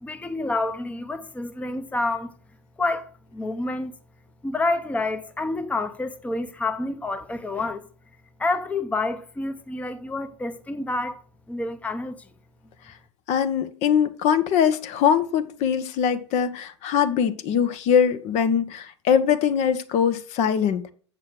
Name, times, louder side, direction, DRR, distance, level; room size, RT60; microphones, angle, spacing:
voice 1, 0.0-2.3 2.8-3.9 4.4-7.8 8.4-12.3, left 2 dB, 10° left, 0.8 m, -28 dB
voice 2, 13.3-20.9, left 8 dB, 45° left, 1.0 m, -22 dB
7.6 x 6.4 x 6.4 m
hypercardioid pair, 90°, 15 cm